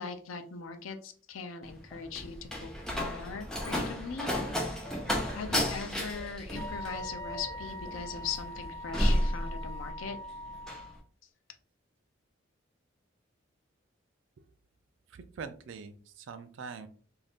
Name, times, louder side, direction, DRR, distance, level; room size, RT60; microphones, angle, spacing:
voice 1, 0.0-4.3 5.3-10.2, left 5 dB, 85° left, 6 dB, 0.5 m, -40 dB
Slam, 1.6-10.1 10.4-10.9, equal, 5° left, 0.5 m, -32 dB
Bird, 2.2-9.9, equal, 35° left, 0.8 m, -47 dB
Wind instrument woodwind instrument, 6.5-11.0, left 1 dB, 40° right, 1.0 m, -42 dB
voice 2, 15.1-16.9, right 5 dB, 70° right, 10 dB, 0.4 m, -43 dB
2.6 x 2.4 x 3.4 m, 0.42 s
head